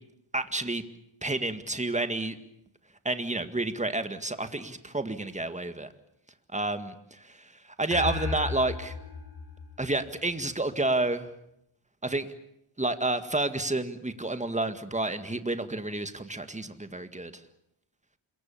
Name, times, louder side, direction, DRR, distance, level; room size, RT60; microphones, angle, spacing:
voice 1, 0.3-0.8 1.2-2.4 3.1-5.9 6.5-8.9 9.8-11.3 12.0-12.3 12.8-17.3, right 2 dB, 15° right, 9 dB, 1.9 m, -30 dB
sound 1, 7.9-10.6, left 3 dB, 55° left, 5.7 m, -36 dB
27.0 x 23.0 x 7.1 m, 0.79 s
wide cardioid pair, 100°, 48 cm